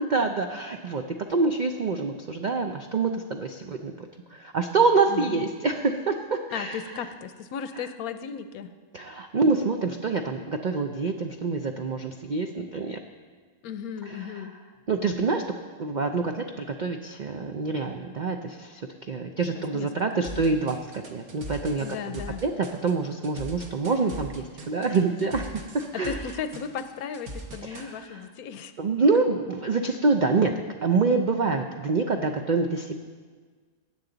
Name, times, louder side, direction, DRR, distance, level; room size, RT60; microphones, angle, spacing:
voice 1, 0.0-7.0 7.7-7.8 8.9-13.0 14.1-14.5 14.9-15.4 15.8-18.8 19.1-26.2 27.6-28.2 28.8-30.5 30.8-33.0, right 4 dB, 75° right, 5 dB, 0.4 m, -26 dB
voice 2, 5.1-5.4 6.5-8.7 13.6-14.5 19.5-20.6 21.8-22.4 25.9-28.7, left 7 dB, 80° left, 11 dB, 1.1 m, -36 dB
sound 1, 20.2-27.9, right 1 dB, 55° right, 1.5 m, -40 dB
16.0 x 9.6 x 3.9 m, 1.5 s
omnidirectional pair, 1.6 m